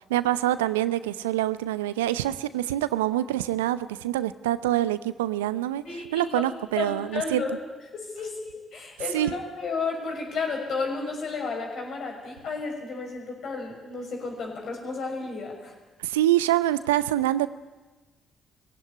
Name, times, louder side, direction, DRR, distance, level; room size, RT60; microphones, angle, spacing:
voice 1, 0.1-5.8 6.1-7.4 9.1-9.3 16.0-17.5, right 14 dB, 85° right, 15 dB, 0.6 m, -25 dB
voice 2, 5.8-6.5 6.8-7.5 7.9-15.7, left 4 dB, 60° left, 1 dB, 6.3 m, -32 dB
21.0 x 16.5 x 9.8 m, 1.3 s
hypercardioid pair, 45°, 0 cm